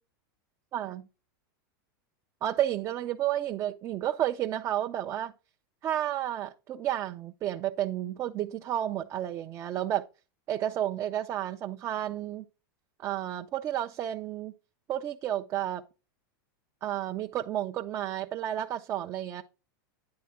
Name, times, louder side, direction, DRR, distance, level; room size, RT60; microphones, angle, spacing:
voice 1, 0.7-1.0 2.4-5.3 5.8-10.1 10.5-12.4 13.0-14.5 14.9-15.8 16.8-19.4, right 12 dB, 25° right, 0.4 m, -31 dB
9.5 x 3.4 x 5.7 m
supercardioid pair, 150°, 11 cm